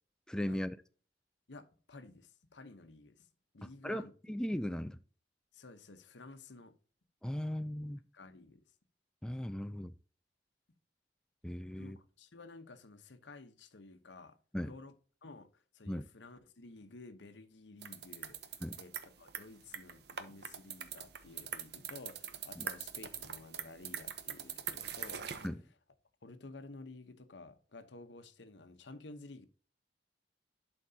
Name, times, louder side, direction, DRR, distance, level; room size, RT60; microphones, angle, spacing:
voice 1, 0.3-0.8 3.6-5.0 7.2-8.0 9.2-9.9 11.4-12.0 14.5-14.7 15.9-16.0 18.6-18.8 22.6-22.7 25.4-25.6, left 1 dB, 5° left, 0.3 m, -37 dB
voice 2, 1.5-3.3 3.5-4.3 5.5-6.8 8.1-8.6 11.8-14.4 14.6-14.9 15.2-25.2 26.2-29.5, left 3 dB, 85° left, 0.9 m, -53 dB
sound 1, 17.8-25.5, right 8 dB, 65° right, 0.9 m, -43 dB
11.5 x 4.5 x 2.7 m
head